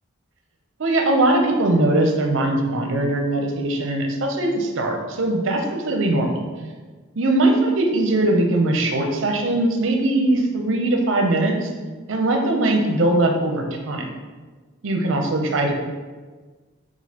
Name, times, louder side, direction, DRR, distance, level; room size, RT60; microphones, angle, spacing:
voice 1, 0.8-6.3 7.2-11.7 12.1-14.1 14.8-15.7, right 2 dB, 70° right, 2 dB, 0.6 m, -20 dB
6.1 x 2.4 x 2.8 m, 1.4 s
head